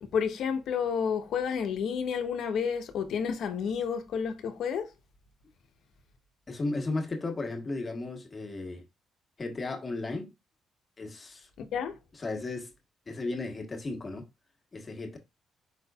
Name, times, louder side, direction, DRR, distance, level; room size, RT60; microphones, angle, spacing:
voice 1, 0.0-4.9 11.6-12.0, left 7 dB, 70° left, 0.9 m, -30 dB
voice 2, 6.5-8.8 9.4-10.3 11.0-11.5 12.1-12.7 13.1-14.3 14.7-15.2, left 2 dB, 30° left, 1.4 m, -35 dB
5.2 x 4.2 x 2.3 m
cardioid pair, 90°, 0 cm